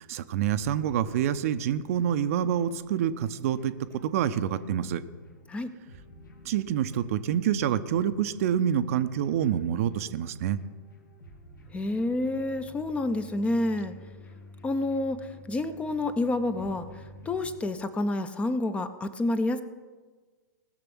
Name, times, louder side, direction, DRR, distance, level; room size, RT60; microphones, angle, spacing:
voice 1, 0.0-5.0 6.4-10.6, right 9 dB, 45° right, 11 dB, 0.7 m, -27 dB
sound 1, 0.5-17.6, left 1 dB, 70° left, 2.1 m, -51 dB
voice 2, 11.7-13.9 14.6-19.6, left 2 dB, 10° left, 12 dB, 0.7 m, -29 dB
19.5 x 6.8 x 6.1 m, 1.4 s
figure-of-eight pair, 110°, 10 cm